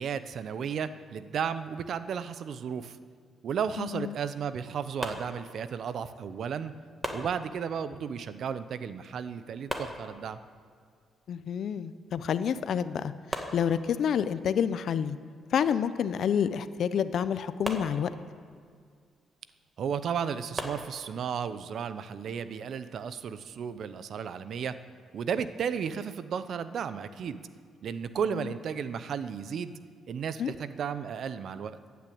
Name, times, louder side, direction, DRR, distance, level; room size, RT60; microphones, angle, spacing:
voice 1, 0.0-3.0 3.4-6.7 7.1-10.4 19.8-24.8 25.1-27.4 27.8-29.7 30.1-31.9, right 7 dB, 60° right, 13 dB, 0.8 m, -34 dB
voice 2, 3.8-4.2 11.3-15.2 15.5-18.1 28.3-28.5 30.4-30.5, left 8 dB, 65° left, 13 dB, 0.7 m, -29 dB
sound 1, 5.0-6.0 7.0-8.0 9.7-10.7 12.3-12.4 12.8-12.9 13.3-14.4 17.6-18.6 20.6-21.5, right 1 dB, 15° right, 1.8 m, -39 dB
14.5 x 9.5 x 8.6 m, 2.1 s
cardioid pair, 90°, 0 cm